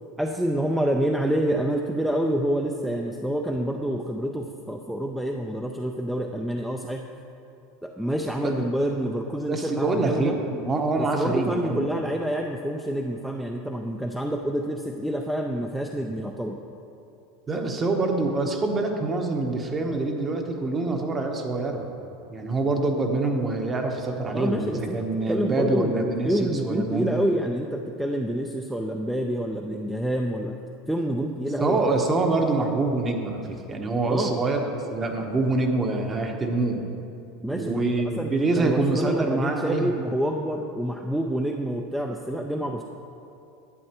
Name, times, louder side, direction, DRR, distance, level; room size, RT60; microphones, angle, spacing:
voice 1, 0.2-7.0 7.8-10.3 11.0-16.6 24.3-30.5 30.9-31.8 34.1-34.3 37.4-42.8, equal, 5° right, 2 dB, 0.4 m, -27 dB
voice 2, 9.5-11.8 17.5-21.8 22.3-27.2 31.6-34.6 34.9-36.8 37.5-39.9, right 3 dB, 25° right, 3 dB, 0.9 m, -25 dB
11.0 x 7.7 x 3.0 m, 2.7 s
supercardioid pair, 125°, 0 cm